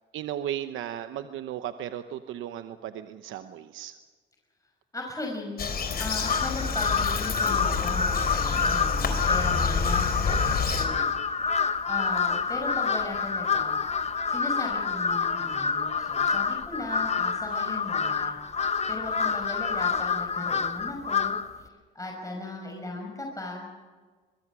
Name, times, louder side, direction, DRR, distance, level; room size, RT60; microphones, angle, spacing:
voice 1, 0.1-3.9 9.5-9.7, right 11 dB, 85° right, 9 dB, 1.0 m, -35 dB
voice 2, 4.9-11.0 11.8-13.8 14.3-18.4 18.9-21.4 21.9-23.8, left 2 dB, 15° left, 0 dB, 5.9 m, -37 dB
Bird vocalization bird call bird song, 5.6-10.9, left 5 dB, 50° left, 3.8 m, -29 dB
Crow, 6.2-21.6, left 5 dB, 35° left, 1.3 m, -27 dB
24.0 x 22.5 x 6.2 m, 1.4 s
cardioid pair, 90°, 20 cm